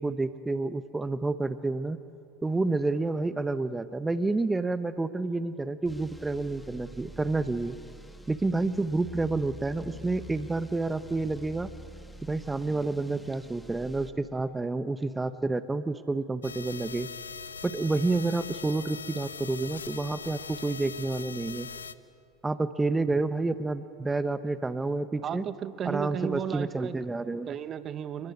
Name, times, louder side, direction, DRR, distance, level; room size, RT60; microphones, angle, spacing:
voice 1, 0.0-2.0 2.4-7.8 8.3-11.7 12.2-17.1 17.6-21.7 22.4-25.4 25.8-27.5, right 3 dB, 15° right, 11 dB, 1.0 m, -29 dB
sound 1, 5.8-14.1, equal, 5° left, 2.4 m, -47 dB
sound 2, 16.4-21.9, left 6 dB, 85° left, 0.7 m, -41 dB
voice 2, 25.2-27.0 27.5-28.3, right 9 dB, 40° right, 12 dB, 1.3 m, -34 dB
29.0 x 21.0 x 9.6 m, 2.5 s
hypercardioid pair, 75°, 0 cm